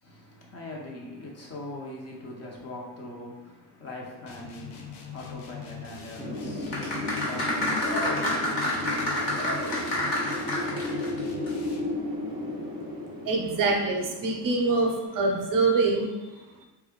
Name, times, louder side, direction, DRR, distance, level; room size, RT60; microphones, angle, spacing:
voice 1, 0.0-9.3, left 1 dB, 35° left, -2 dB, 0.8 m, -42 dB
sound 1, 4.3-12.0, left 8 dB, 75° left, 0.7 m, -43 dB
Wind, 6.2-14.9, left 1 dB, 10° right, 0.6 m, -34 dB
sound 2, 6.7-11.2 11.5-11.6, left 1 dB, 60° left, 1.3 m, -28 dB
voice 2, 13.2-16.5, right 3 dB, 50° right, 2 dB, 0.6 m, -25 dB
3.7 x 2.3 x 3.6 m, 1.1 s
cardioid pair, 150°, 41 cm